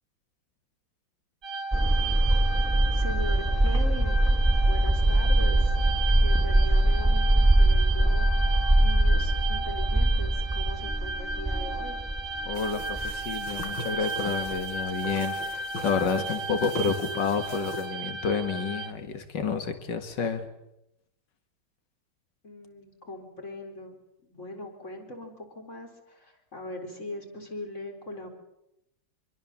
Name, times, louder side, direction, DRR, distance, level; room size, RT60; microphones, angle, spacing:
sound 1, 1.4-18.9, right 3 dB, 45° right, 1.6 m, -35 dB
sound 2, 1.7-13.7 14.0-14.1 14.5-14.6, right 1 dB, ahead, 2.6 m, -23 dB
voice 1, 2.9-4.3 4.6-5.7 6.2-12.0 22.4-28.3, left 2 dB, 35° left, 2 dB, 4.5 m, -40 dB
voice 2, 12.4-20.5, left 5 dB, 65° left, 8 dB, 2.6 m, -30 dB
sound 3, 12.5-17.9, left 1 dB, 85° left, 4.5 m, -41 dB
25.5 x 22.5 x 7.3 m, 0.85 s
omnidirectional pair, 2.2 m